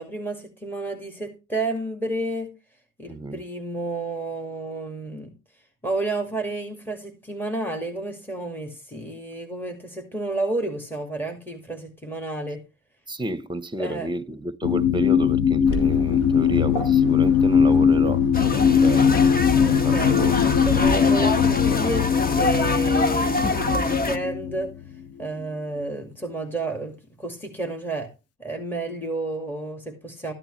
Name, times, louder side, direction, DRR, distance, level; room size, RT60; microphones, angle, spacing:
voice 1, 0.0-2.5 3.0-5.3 5.8-12.6 13.8-14.1 19.6-24.7 25.2-28.1 28.4-30.3, right 2 dB, 5° left, 2.3 m, -31 dB
voice 2, 3.1-3.4 13.1-19.2 19.5-20.6, equal, 15° right, 1.1 m, -31 dB
sound 1, 14.6-24.7 25.3-25.4, left 7 dB, 55° left, 0.7 m, -20 dB
Waves surf, 15.7-20.9, equal, 85° left, 3.0 m, -36 dB
sound 2, 18.3-24.2, left 2 dB, 30° left, 1.3 m, -25 dB
13.5 x 8.9 x 3.2 m
cardioid pair, 90°, 30 cm